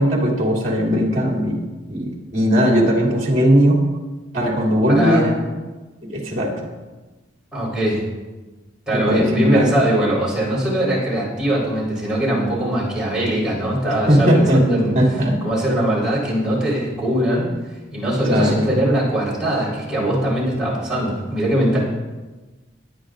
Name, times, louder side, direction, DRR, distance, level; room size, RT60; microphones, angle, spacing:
voice 1, 0.0-3.8 4.3-5.4 6.1-6.5 8.9-9.7 14.1-14.6 14.9-15.3 18.3-18.6, equal, 40° right, -2 dB, 2.8 m, -18 dB
voice 2, 4.9-5.3 7.5-8.0 8.9-14.9 15.4-17.5 17.9-21.8, right 1 dB, 5° right, -7 dB, 4.2 m, -21 dB
21.0 x 9.2 x 2.6 m, 1.2 s
head